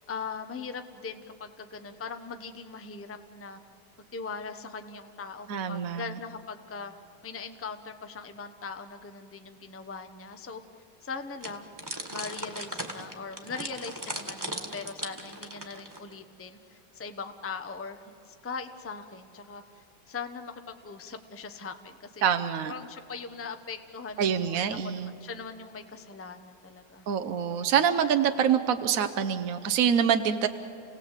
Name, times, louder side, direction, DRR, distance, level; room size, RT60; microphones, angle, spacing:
voice 1, 0.1-3.6 4.1-6.9 7.2-10.6 11.0-11.7 12.1-22.2 22.7-27.1, left 5 dB, 15° left, 8 dB, 0.5 m, -40 dB
voice 2, 5.5-6.0 22.2-22.7 24.2-25.1 27.1-30.5, right 8 dB, 60° right, 9 dB, 1.0 m, -25 dB
sound 1, 11.4-16.1, right 1 dB, 10° right, 1.6 m, -38 dB
29.0 x 18.0 x 8.1 m, 2.9 s
omnidirectional pair, 2.0 m